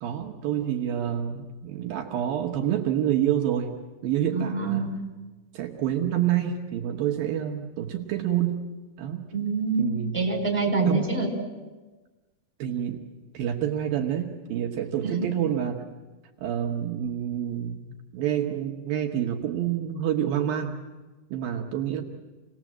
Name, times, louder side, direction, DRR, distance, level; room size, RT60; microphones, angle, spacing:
voice 1, 0.0-3.7 4.0-5.0 5.5-8.7 9.0-9.3 9.8-10.1 10.9-11.1 12.6-13.0 13.3-15.8 16.4-20.8 21.3-22.0, right 10 dB, 70° right, 2 dB, 2.8 m, -28 dB
voice 2, 4.3-4.9 9.3-9.8 10.1-11.3 15.0-15.3, right 4 dB, 5° left, 0 dB, 3.7 m, -26 dB
28.0 x 19.5 x 7.5 m, 1.2 s
omnidirectional pair, 4.6 m